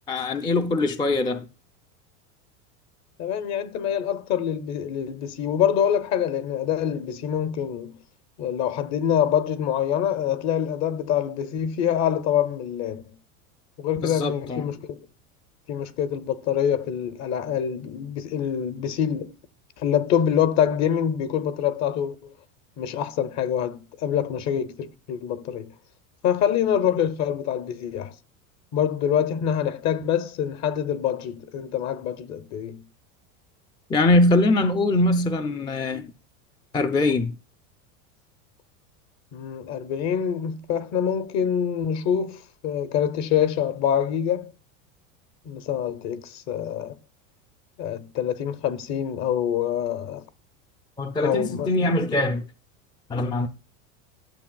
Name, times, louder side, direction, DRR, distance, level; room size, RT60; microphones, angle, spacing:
voice 1, 0.1-1.5 14.0-14.6 33.9-36.0 36.7-37.3 51.0-52.4 53.1-53.5, left 2 dB, 10° left, 0.4 m, -22 dB
voice 2, 3.2-8.0 8.4-13.1 13.8-15.0 15.7-19.4 19.8-22.3 22.8-25.7 26.2-28.1 28.7-32.8 39.3-44.5 45.5-47.0 47.8-50.2 51.2-51.9, left 9 dB, 40° left, 0.9 m, -25 dB
12.0 x 7.0 x 2.3 m
supercardioid pair, 110°, 41 cm